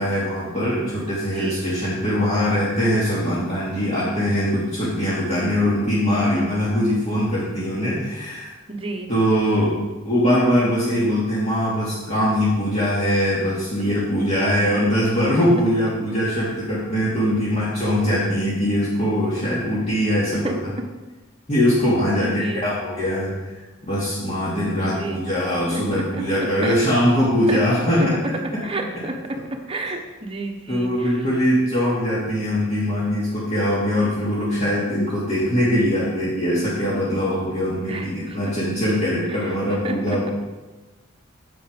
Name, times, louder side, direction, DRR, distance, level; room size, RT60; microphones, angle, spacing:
voice 1, 0.0-8.5 9.1-9.7 10.0-20.5 21.5-23.5 23.8-28.2 28.5-28.6 30.7-40.3, equal, 30° left, -9 dB, 2.2 m, -22 dB
voice 2, 1.3-1.6 8.7-9.1 20.4-20.8 22.2-22.7 24.8-25.3 25.7-25.8 26.1-26.2 26.6-26.8 27.5-27.6 28.0-28.1 28.6-29.2 29.7-31.1 37.9-38.5 39.3-39.5 39.8-40.2, right 2 dB, 25° right, 3 dB, 1.1 m, -30 dB
9.7 x 7.7 x 5.1 m, 1.2 s
head